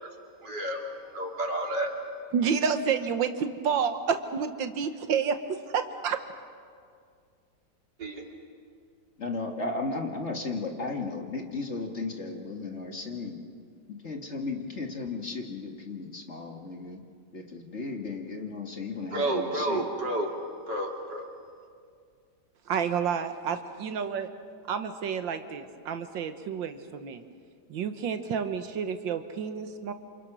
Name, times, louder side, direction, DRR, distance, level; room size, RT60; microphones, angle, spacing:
voice 1, 0.4-1.9 8.0-8.2 19.1-20.3 20.7-21.3, right 1 dB, 65° right, 1 dB, 3.6 m, -30 dB
voice 2, 2.3-5.4 5.7-6.2 22.7-24.3 24.7-27.2 27.7-29.9, right 6 dB, 85° right, 8 dB, 1.8 m, -29 dB
voice 3, 9.2-13.4 13.9-17.0 17.3-19.9, left 3 dB, 40° left, 3 dB, 2.1 m, -35 dB
28.5 x 27.5 x 6.2 m, 2.2 s
omnidirectional pair, 2.0 m